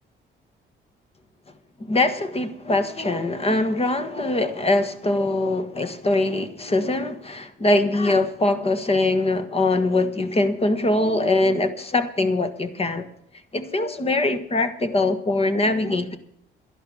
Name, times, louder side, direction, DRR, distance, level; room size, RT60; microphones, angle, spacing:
voice 1, 1.8-13.1 13.5-16.2, left 2 dB, 30° left, 1.5 m, -22 dB
11.5 x 11.0 x 7.0 m
cardioid pair, 90°, 20 cm